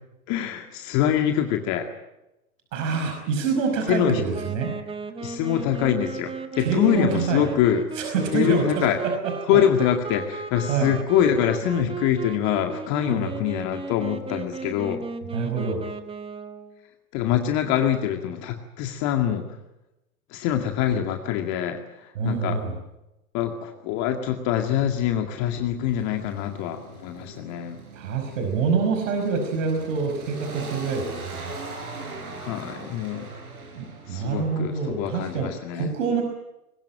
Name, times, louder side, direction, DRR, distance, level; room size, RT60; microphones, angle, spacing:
voice 1, 0.3-1.9 3.9-4.2 5.2-7.8 8.3-9.0 9.5-15.0 17.1-19.4 20.3-22.6 23.3-27.8 32.3-33.3 34.1-35.9, left 10 dB, 40° left, 5 dB, 2.1 m, -24 dB
voice 2, 2.7-4.8 6.6-7.5 8.0-9.6 10.7-10.9 13.1-13.3 15.3-15.8 22.2-22.8 27.9-31.5 33.7-35.5 35.7-36.2, right 5 dB, 60° right, 4 dB, 5.3 m, -26 dB
Wind instrument woodwind instrument, 4.3-16.8, right 4 dB, 10° right, 1.6 m, -35 dB
sound 1, 25.9-35.5, right 3 dB, 80° right, 6.2 m, -41 dB
21.5 x 19.0 x 8.9 m, 0.94 s
figure-of-eight pair, 105°, 43 cm